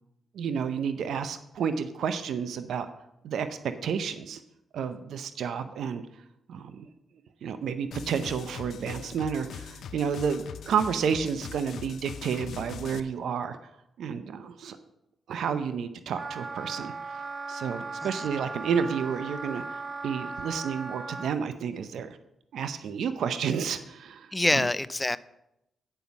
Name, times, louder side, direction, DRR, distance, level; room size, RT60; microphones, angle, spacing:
voice 1, 0.3-2.9 3.2-4.4 4.7-6.0 6.5-6.9 7.4-13.6 14.0-14.8 15.3-16.9 17.5-22.2 22.5-24.7, right 7 dB, 80° right, 10 dB, 0.6 m, -31 dB
sound 1, 7.9-13.0, left 8 dB, 75° left, 0.5 m, -41 dB
Wind instrument woodwind instrument, 16.1-21.3, right 3 dB, 45° right, 0.8 m, -37 dB
voice 2, 24.3-25.2, left 2 dB, 20° left, 16 dB, 0.4 m, -26 dB
9.1 x 5.3 x 7.0 m, 0.84 s
cardioid pair, 70°, 0 cm